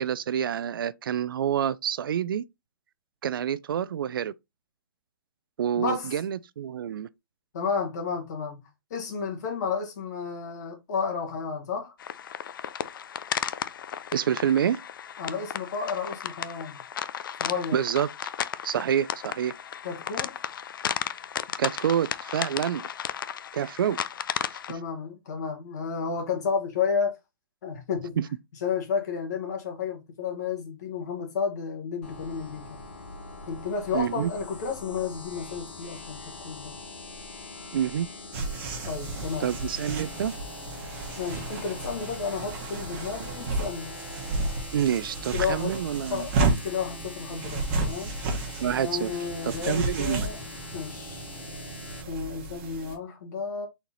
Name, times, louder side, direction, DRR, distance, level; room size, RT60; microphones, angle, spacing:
voice 1, 0.0-2.4 3.2-4.3 5.6-7.1 14.1-14.8 17.7-18.1 18.6-19.5 21.6-22.9 23.5-24.0 28.2-28.3 33.9-34.3 37.7-38.1 39.4-40.4 44.7-46.3 48.6-49.1 49.4-50.3, right 9 dB, 75° right, 0.4 m, -27 dB
voice 2, 5.8-6.2 7.5-8.6 8.9-11.9 15.2-16.8 17.4-17.8 19.8-20.4 24.7-27.1 27.6-28.2 28.6-32.8 33.5-36.8 38.8-39.5 41.2-44.0 45.3-45.8 46.1-46.3 46.6-48.1 48.8-50.4 50.7-51.2 52.1-53.7, left 6 dB, 50° left, 1.7 m, -32 dB
sound 1, 12.0-24.7, left 9 dB, 70° left, 0.4 m, -34 dB
sound 2, 32.0-52.0, left 3 dB, 35° left, 1.8 m, -43 dB
sound 3, 38.3-53.0, right 3 dB, 35° right, 1.2 m, -32 dB
4.1 x 3.0 x 3.9 m
hypercardioid pair, 170°, 12 cm